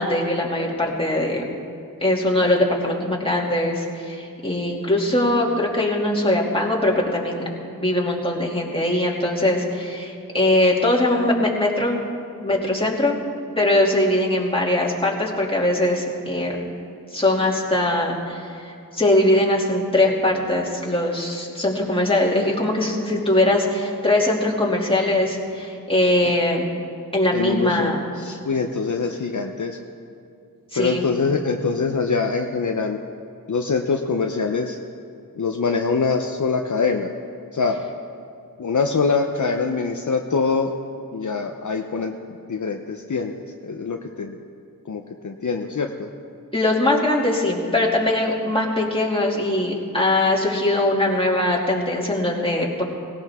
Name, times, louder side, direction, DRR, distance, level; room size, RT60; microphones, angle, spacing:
voice 1, 0.0-1.4 2.0-7.4 7.8-12.0 12.4-13.2 13.6-16.5 17.1-26.7 27.1-28.0 30.7-31.0 46.5-52.8, left 1 dB, 15° left, -3 dB, 2.7 m, -21 dB
voice 2, 27.3-27.9 28.2-29.8 30.8-33.0 33.5-34.8 35.4-37.1 37.5-37.8 38.6-40.7 41.1-42.1 42.5-44.3 44.9-45.9, left 4 dB, 55° left, 3 dB, 0.8 m, -24 dB
18.5 x 17.5 x 3.7 m, 2.6 s
wide cardioid pair, 60°, 35 cm